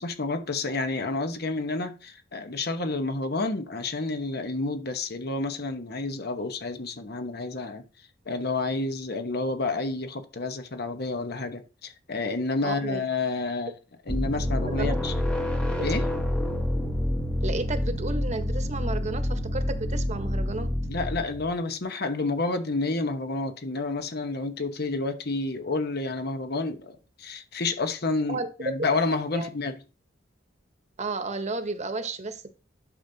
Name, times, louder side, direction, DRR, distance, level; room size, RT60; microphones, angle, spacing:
voice 1, 0.0-7.8 8.2-13.7 14.1-15.2 15.8-16.1 20.9-29.7, left 3 dB, 55° left, 1.1 m, -30 dB
voice 2, 12.6-13.0 14.7-15.0 17.4-20.7 28.3-28.5 29.3-29.5 31.0-32.6, right 2 dB, 35° right, 1.1 m, -32 dB
sound 1, 14.1-21.5, left 1 dB, 5° left, 1.0 m, -28 dB
11.0 x 6.8 x 2.8 m
head